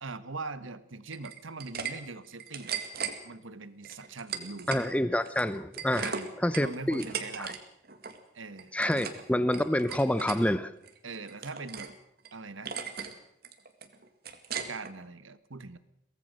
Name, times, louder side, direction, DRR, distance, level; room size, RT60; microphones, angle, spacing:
voice 1, 0.0-2.8 3.2-4.7 6.0-6.3 6.6-7.6 8.3-9.1 11.0-11.9 12.3-12.8 14.7-15.8, right 3 dB, 85° right, 1.3 m, -41 dB
sound 1, 1.1-1.9 2.2-3.1 3.8-4.9 5.2-7.6 7.8-8.2 8.6-9.2 9.5-10.4 10.8-11.9 12.2-12.3 12.7-13.1 13.4-14.9, right 6 dB, 50° right, 2.1 m, -37 dB
voice 2, 4.7-6.1 6.4-7.0 7.4-7.5 8.7-10.7, left 1 dB, 5° left, 0.7 m, -27 dB
23.0 x 18.0 x 6.6 m
head